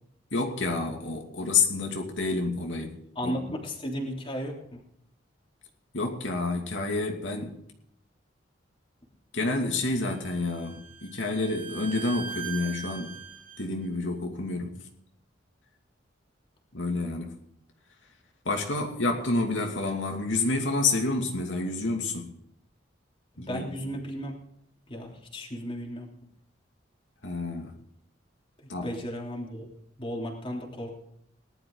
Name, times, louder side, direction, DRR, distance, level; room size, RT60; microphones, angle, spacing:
voice 1, 0.3-3.0 3.2-3.3 5.9-7.6 9.3-13.1 13.6-14.8 16.7-17.3 18.4-22.3 23.4-23.6 27.2-27.7 28.7-28.9, left 3 dB, 85° left, 1 dB, 2.6 m, -29 dB
voice 2, 3.1-4.8 23.4-24.4 24.9-26.1 28.6-29.7 30.0-31.0, equal, 30° left, 0 dB, 3.4 m, -35 dB
Bowed string instrument, 9.9-13.7, right 7 dB, 45° right, 1.7 m, -41 dB
19.0 x 12.0 x 4.0 m, 0.70 s
head